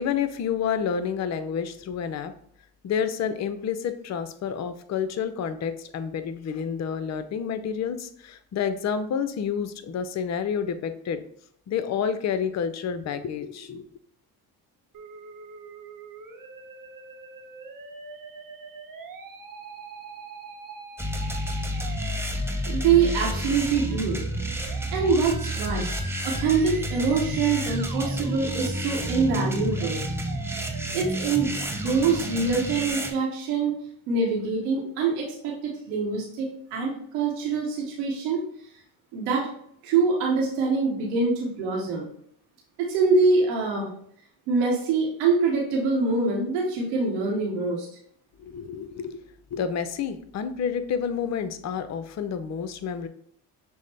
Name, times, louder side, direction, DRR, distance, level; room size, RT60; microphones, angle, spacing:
voice 1, 0.0-2.3 2.8-11.2 11.7-13.9 48.4-49.2 49.5-53.1, left 7 dB, 40° left, 11 dB, 0.5 m, -29 dB
Musical instrument, 14.9-32.9, right 4 dB, 45° right, 0.9 m, -43 dB
sound 1, 21.0-33.1, equal, 5° right, 0.6 m, -30 dB
voice 2, 22.7-24.2 24.9-25.9 26.2-30.0 30.9-33.7 34.1-38.4 39.1-39.5 39.8-42.1 42.8-43.9 44.5-47.9, right 4 dB, 85° right, -2 dB, 1.0 m, -24 dB
6.2 x 2.1 x 3.2 m, 0.65 s
supercardioid pair, 65°, 45 cm